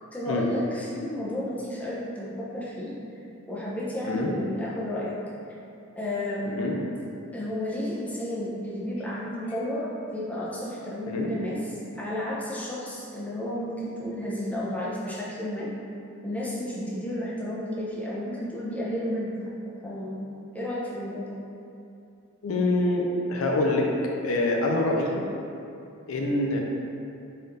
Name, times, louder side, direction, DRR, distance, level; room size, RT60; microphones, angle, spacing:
voice 1, 0.1-3.0 3.5-5.2 6.0-6.7 7.3-15.7 16.2-19.4 19.8-21.4, left 1 dB, 5° left, -7 dB, 0.5 m, -32 dB
voice 2, 22.4-23.9 24.2-25.2 26.1-26.6, left 2 dB, 70° left, 0 dB, 0.5 m, -25 dB
4.3 x 2.5 x 3.8 m, 2.7 s
head